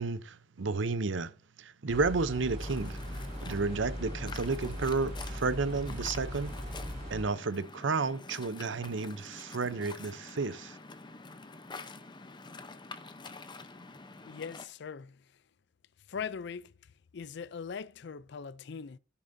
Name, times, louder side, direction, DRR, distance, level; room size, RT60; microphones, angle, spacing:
voice 1, 0.0-1.3 1.6-3.0 3.4-6.6 7.1-10.8, right 4 dB, 75° right, 0.7 m, -32 dB
sound 1, 1.9-7.2, equal, 35° right, 3.6 m, -39 dB
Waves surf, 2.6-14.7, left 3 dB, 25° left, 0.8 m, -47 dB
voice 2, 14.3-15.2 16.1-16.7 17.1-19.0, left 6 dB, 60° left, 0.4 m, -40 dB
16.0 x 7.0 x 2.7 m
head